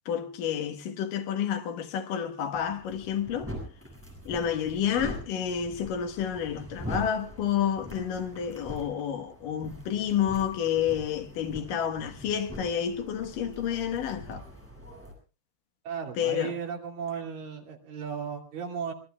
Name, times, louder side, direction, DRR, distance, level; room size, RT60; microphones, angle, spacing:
voice 1, 0.1-3.5 4.3-14.4 16.2-16.5, left 9 dB, 65° left, 2.7 m, -30 dB
sound 1, 2.5-15.1, equal, 5° right, 6.7 m, -43 dB
voice 2, 15.9-18.9, right 7 dB, 60° right, 4.0 m, -35 dB
25.0 x 21.0 x 2.3 m
omnidirectional pair, 4.6 m